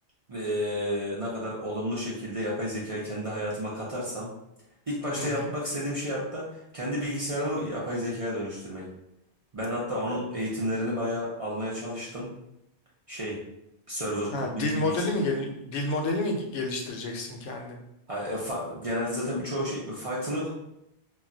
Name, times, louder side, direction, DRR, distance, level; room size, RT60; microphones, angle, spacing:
voice 1, 0.3-4.3 4.9-8.9 9.5-12.3 13.1-13.4 13.9-14.9 18.1-20.5, equal, 40° right, -6 dB, 0.5 m, -31 dB
voice 2, 5.2-5.5 14.3-17.8, left 2 dB, 80° left, 1 dB, 0.9 m, -29 dB
2.3 x 2.2 x 3.7 m, 0.82 s
omnidirectional pair, 1.2 m